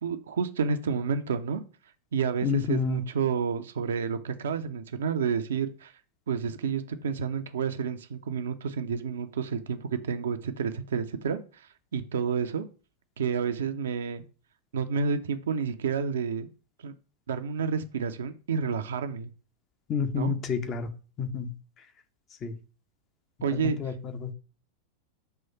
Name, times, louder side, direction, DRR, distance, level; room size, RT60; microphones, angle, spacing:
voice 1, 0.0-1.6 2.1-5.9 6.3-11.6 11.9-12.6 13.2-14.2 14.7-16.5 16.8-16.9 17.3-19.3 20.1-20.3 23.4-23.9, right 6 dB, 65° right, 8 dB, 0.6 m, -30 dB
voice 2, 2.4-3.0 19.9-20.9 21.2-21.5 22.4-22.5 23.5-24.3, left 6 dB, 30° left, 7 dB, 0.7 m, -29 dB
5.7 x 3.1 x 5.5 m, 0.37 s
figure-of-eight pair, 90°, 0 cm